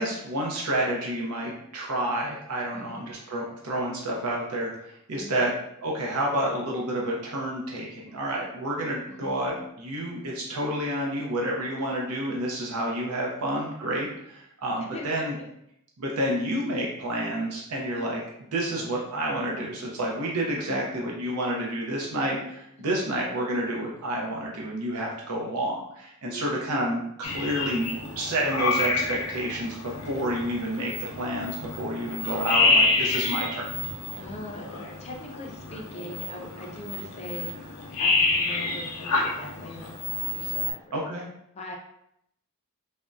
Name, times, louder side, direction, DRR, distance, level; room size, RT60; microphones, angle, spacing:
voice 1, 0.0-5.5 5.8-15.3 16.0-18.2 18.5-29.8 30.1-33.7 40.9-41.3, right 1 dB, 80° right, -2 dB, 0.6 m, -29 dB
voice 2, 2.7-3.1 5.1-5.5 9.1-9.6 14.9-15.3 16.2-16.3 20.7-21.1 22.8-23.2 26.3-26.7 34.2-37.5 38.0-41.1 41.5-41.7, left 1 dB, 30° left, 1 dB, 0.4 m, -42 dB
sound 1, 27.2-40.7, left 3 dB, 90° left, 0.5 m, -28 dB
3.4 x 2.1 x 2.5 m, 0.75 s
head